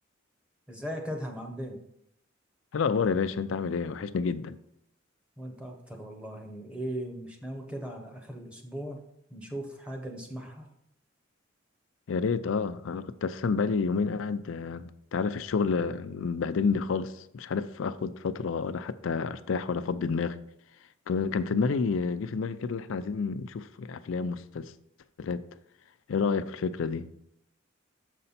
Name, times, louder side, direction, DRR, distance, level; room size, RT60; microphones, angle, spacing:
voice 1, 0.7-1.8 5.4-9.0 9.3-10.7, right 1 dB, 5° right, 1.0 m, -38 dB
voice 2, 2.7-4.6 12.1-20.4 21.1-24.7 25.2-25.4 26.1-27.1, left 5 dB, 70° left, 0.4 m, -29 dB
6.7 x 5.4 x 4.2 m
head